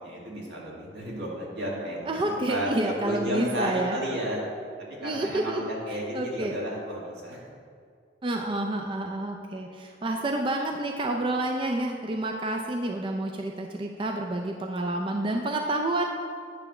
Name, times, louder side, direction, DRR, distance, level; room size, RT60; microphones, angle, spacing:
voice 1, 0.0-4.4 4.9-7.4, equal, 80° right, -4 dB, 1.8 m, -32 dB
voice 2, 2.1-4.0 5.0-5.6 6.1-6.5 8.2-16.1, right 2 dB, 30° right, 2 dB, 0.4 m, -29 dB
9.0 x 3.4 x 6.0 m, 2.3 s
head